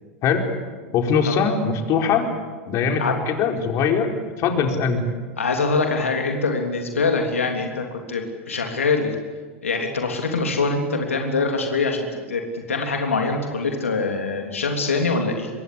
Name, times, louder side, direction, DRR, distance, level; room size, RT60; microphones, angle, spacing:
voice 1, 0.9-2.3 2.7-4.1 4.4-5.0, left 6 dB, 45° left, 4 dB, 4.6 m, -21 dB
voice 2, 5.4-9.1 9.6-12.4 12.7-15.5, left 4 dB, 85° left, 3 dB, 3.3 m, -24 dB
26.0 x 22.5 x 8.6 m, 1.5 s
hypercardioid pair, 90°, 7 cm